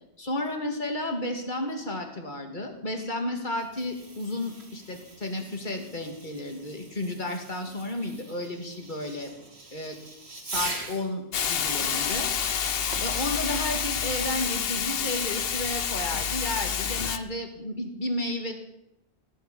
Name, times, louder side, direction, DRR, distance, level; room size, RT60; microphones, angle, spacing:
voice 1, 0.2-9.3 9.7-10.0 10.4-12.7 13.0-18.5, left 1 dB, 45° left, 4 dB, 2.4 m, -32 dB
Fireworks, 3.5-11.2 12.9-13.9, right 2 dB, 75° right, 2.5 m, -41 dB
Hiss, 11.3-17.2, left 7 dB, 65° left, 1.0 m, -28 dB
18.0 x 6.6 x 9.8 m, 0.84 s
omnidirectional pair, 1.1 m